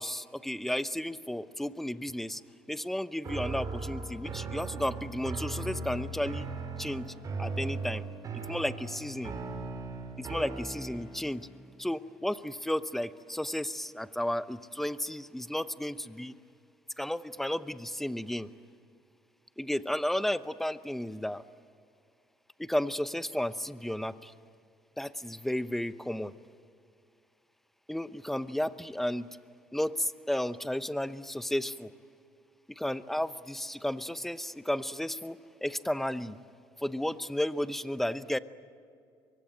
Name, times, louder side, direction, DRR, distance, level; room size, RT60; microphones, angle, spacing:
voice 1, 0.0-2.4 2.7-6.5 6.8-7.1 7.4-8.0 8.5-9.3 10.2-11.5 11.8-16.3 17.0-18.5 19.6-21.4 22.6-24.3 25.0-26.3 27.9-29.3 29.7-31.9 32.7-36.4 36.8-38.4, left 1 dB, 5° left, 14 dB, 0.8 m, -33 dB
sound 1, 3.2-11.3, right 3 dB, 40° right, 4.6 m, -38 dB
24.0 x 23.5 x 8.9 m, 2.4 s
cardioid pair, 115°, 9 cm